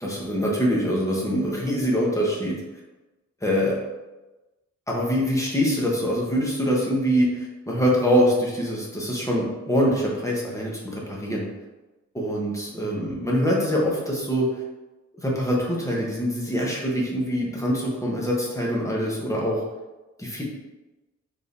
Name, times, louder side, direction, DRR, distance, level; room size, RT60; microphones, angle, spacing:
voice 1, 0.0-2.6 3.4-3.8 4.9-11.5 12.1-14.5 15.1-19.6 20.2-20.4, equal, 10° left, -3 dB, 0.9 m, -24 dB
4.6 x 3.3 x 2.6 m, 1.1 s
wide cardioid pair, 145°, 31 cm